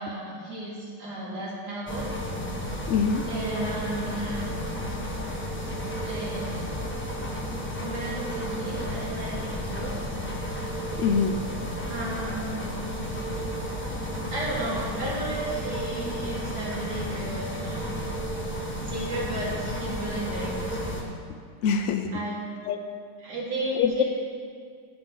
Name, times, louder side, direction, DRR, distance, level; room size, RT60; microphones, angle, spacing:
voice 1, 0.0-2.1 3.3-4.5 6.0-6.7 7.8-10.0 11.9-12.7 14.3-18.1 18.9-20.8 22.1-22.3 23.2-24.0, right 1 dB, 70° right, -6 dB, 2.9 m, -34 dB
sound 1, 1.9-21.0, equal, 10° left, 1.0 m, -32 dB
voice 2, 2.9-3.3 11.0-11.4 14.2-14.3 21.6-22.1 22.7-22.8 23.7-24.0, left 6 dB, 75° left, 5 dB, 0.6 m, -24 dB
15.5 x 6.0 x 3.8 m, 2.1 s
omnidirectional pair, 1.8 m